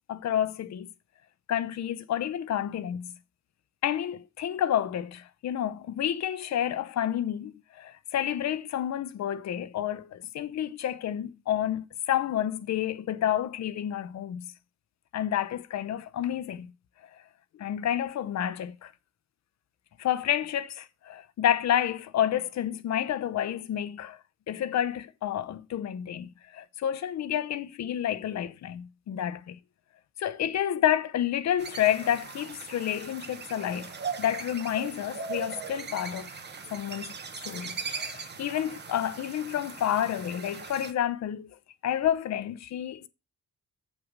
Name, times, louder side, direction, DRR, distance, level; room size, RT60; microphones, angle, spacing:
voice 1, 0.1-0.9 1.5-3.1 3.8-14.4 15.1-16.7 17.6-18.9 20.0-24.2 24.5-29.6 30.2-33.9 34.2-36.4 36.7-37.1 37.4-41.5 41.8-43.1, left 10 dB, 60° left, 0.8 m, -29 dB
sound 1, 31.6-40.9, right 5 dB, 35° right, 1.1 m, -39 dB
7.7 x 6.0 x 5.2 m
cardioid pair, 145°, 30 cm